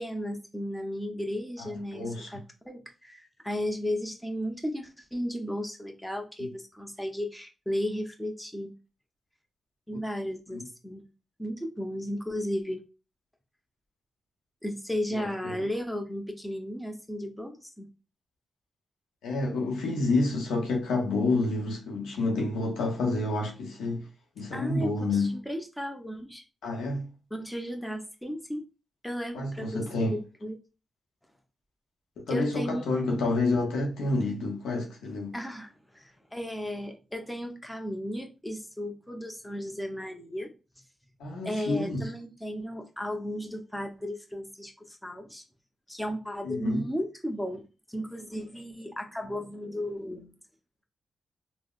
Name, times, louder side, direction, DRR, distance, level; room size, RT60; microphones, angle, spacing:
voice 1, 0.0-8.7 9.9-11.1 11.4-12.8 14.6-17.9 24.5-26.4 27.3-28.6 29.0-30.6 32.3-32.8 33.1-33.2 35.3-40.5 41.4-45.4 45.9-50.3, equal, 5° left, 0.7 m, -35 dB
voice 2, 1.6-2.3 10.5-10.7 15.1-15.6 19.2-24.1 24.4-25.4 26.6-27.1 29.3-30.2 32.3-35.4 41.2-42.0 46.4-46.8, left 2 dB, 85° left, 0.7 m, -29 dB
3.6 x 2.0 x 2.4 m
supercardioid pair, 45°, 0 cm